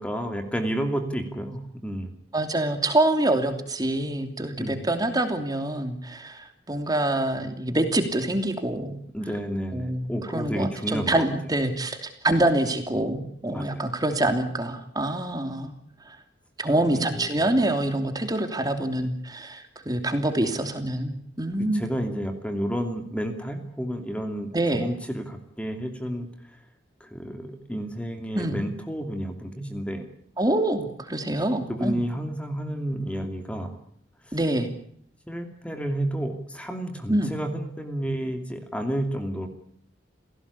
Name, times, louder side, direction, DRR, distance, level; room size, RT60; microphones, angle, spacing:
voice 1, 0.0-2.2 4.6-4.8 9.1-11.3 12.3-12.4 13.5-13.8 16.9-17.5 21.7-26.6 27.0-30.0 31.7-33.8 34.2-34.4 35.3-39.5, equal, 5° left, 5 dB, 2.7 m, -31 dB
voice 2, 2.3-9.0 9.7-10.0 10.3-15.7 16.1-16.2 16.6-21.8 24.5-24.8 28.3-28.6 30.4-32.0 34.3-34.7 37.1-37.3, right 1 dB, 20° right, 6 dB, 3.0 m, -26 dB
29.0 x 17.5 x 8.5 m, 0.63 s
head